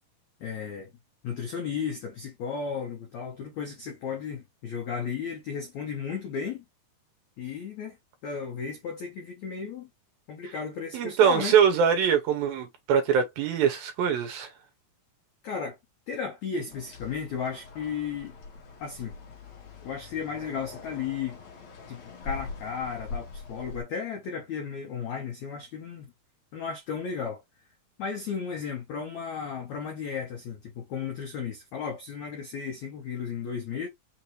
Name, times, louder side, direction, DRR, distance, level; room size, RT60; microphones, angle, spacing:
voice 1, 0.4-0.9 1.2-6.6 7.4-8.0 8.2-9.9 10.3-11.6 15.4-15.8 16.1-18.4 18.8-19.1 19.8-21.4 21.9-26.1 26.5-27.4 28.0-33.9, left 6 dB, 80° left, 1.6 m, -34 dB
voice 2, 10.9-14.5, right 7 dB, 75° right, 2.4 m, -23 dB
sound 1, 16.7-23.8, left 4 dB, 55° left, 2.2 m, -43 dB
6.1 x 2.7 x 3.0 m
omnidirectional pair, 4.7 m